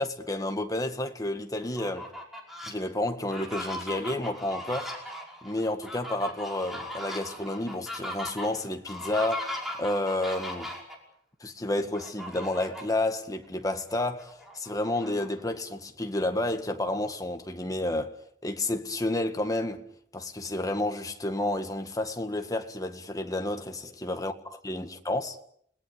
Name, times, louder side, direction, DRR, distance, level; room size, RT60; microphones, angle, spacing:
voice 1, 0.0-2.1 2.7-4.9 5.4-10.7 11.4-18.1 18.4-19.8 20.1-24.3 24.6-25.4, left 1 dB, 20° left, 1.9 m, -30 dB
Fowl, 1.6-2.7 3.2-11.0 11.9-13.0 13.4-13.5 13.9-15.6, left 1 dB, ahead, 5.4 m, -38 dB
30.0 x 19.0 x 6.7 m
head